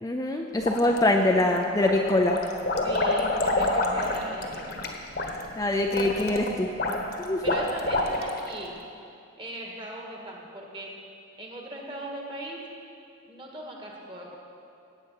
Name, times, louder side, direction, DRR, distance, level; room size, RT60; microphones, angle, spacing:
voice 1, 0.0-2.4 5.6-6.7 7.2-7.5, left 1 dB, 15° left, 2 dB, 0.5 m, -24 dB
sound 1, 0.6-1.4 1.8-8.5, left 2 dB, 50° left, 1.3 m, -28 dB
voice 2, 2.8-4.7 7.2-8.8 9.4-10.9 11.4-12.6 13.3-14.4, right 1 dB, 25° right, -1 dB, 1.7 m, -38 dB
17.5 x 7.9 x 5.6 m, 2.6 s
head